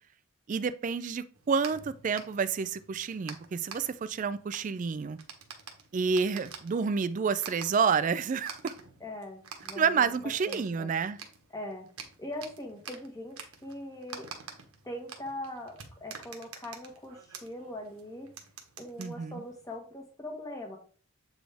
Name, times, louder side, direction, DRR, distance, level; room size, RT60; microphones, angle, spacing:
voice 1, 0.5-5.2 5.9-8.7 9.8-11.2 19.0-19.4, right 5 dB, 35° right, 0.3 m, -29 dB
sound 1, 1.3-19.8, right 6 dB, 85° right, 1.2 m, -49 dB
voice 2, 9.0-10.9 11.5-11.9 12.2-14.3 14.8-18.3 18.8-20.8, left 1 dB, 15° left, 1.4 m, -41 dB
8.0 x 4.1 x 3.4 m
head